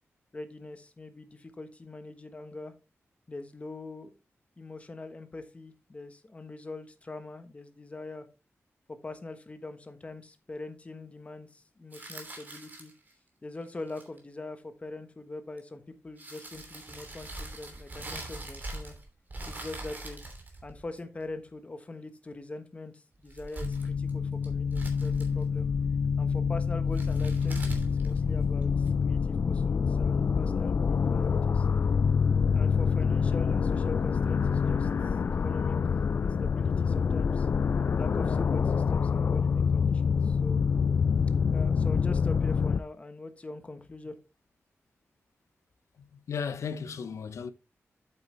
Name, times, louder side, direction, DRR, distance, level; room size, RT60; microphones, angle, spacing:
voice 1, 0.3-2.7 3.3-4.1 4.6-8.3 8.9-12.9 13.4-18.9 19.5-20.2 20.6-25.7 26.2-31.7 32.5-35.8 36.2-37.5 38.0-40.6 41.5-44.2, left 2 dB, 25° left, 1.2 m, -43 dB
sound 1, 11.9-13.1 13.8-14.2 15.6-15.7 16.2-19.0 19.3-21.2 23.1-24.1 24.4-25.5 26.9-28.9, right 2 dB, 40° right, 2.9 m, -41 dB
sound 2, 23.6-42.8, left 6 dB, 50° left, 0.3 m, -26 dB
voice 2, 46.0-47.5, left 6 dB, 85° left, 0.8 m, -35 dB
8.4 x 8.1 x 3.3 m
wide cardioid pair, 140°, 5 cm